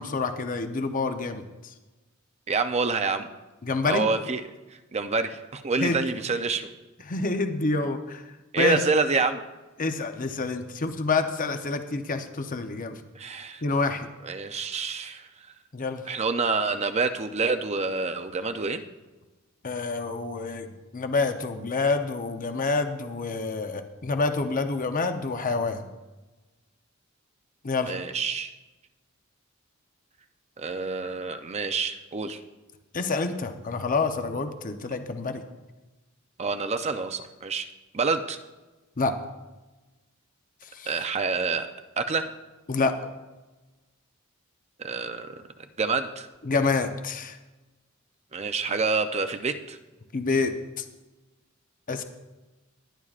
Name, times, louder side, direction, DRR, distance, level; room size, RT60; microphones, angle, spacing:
voice 1, 0.0-1.7 3.6-4.1 5.8-6.0 7.1-8.2 8.6-8.8 9.8-13.0 13.6-14.1 15.7-16.0 19.6-20.7 20.9-25.8 27.6-28.0 32.9-35.4 39.0-39.2 40.7-40.9 42.7-43.0 46.4-47.4 50.1-50.8 51.9-52.0, left 3 dB, 40° left, 7 dB, 0.8 m, -27 dB
voice 2, 2.5-3.3 3.8-4.4 4.9-6.7 8.5-9.4 13.1-13.6 14.2-15.3 16.1-18.8 27.9-28.5 30.6-32.4 36.4-37.7 37.9-38.4 40.9-42.3 44.8-45.4 45.8-46.3 48.3-49.8, right 4 dB, 30° right, 8 dB, 0.6 m, -27 dB
19.5 x 11.0 x 2.5 m, 1.2 s
head